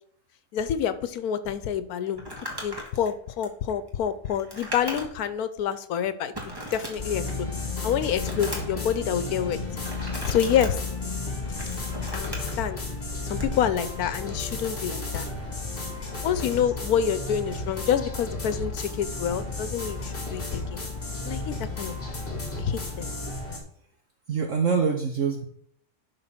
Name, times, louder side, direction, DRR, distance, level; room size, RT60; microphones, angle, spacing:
voice 1, 0.5-7.5 7.8-9.9 10.2-10.8 12.1-12.8 13.3-15.3 16.2-20.8 21.2-22.0 22.6-23.1, left 9 dB, 80° left, 13 dB, 1.2 m, -28 dB
Crumpling crinkling, 2.1-5.3 5.7-5.8 6.3-7.5 7.9-8.8 9.8-10.7 11.3-12.5 13.3-13.6, equal, 15° right, 1.7 m, -37 dB
sound 1, 6.9-23.6, left 1 dB, 35° left, 2.3 m, -36 dB
sound 2, 7.0-23.3, left 6 dB, 65° left, 0.3 m, -36 dB
voice 2, 24.3-25.5, right 5 dB, 60° right, 3 dB, 1.2 m, -25 dB
11.0 x 3.8 x 5.8 m, 0.65 s
omnidirectional pair, 1.6 m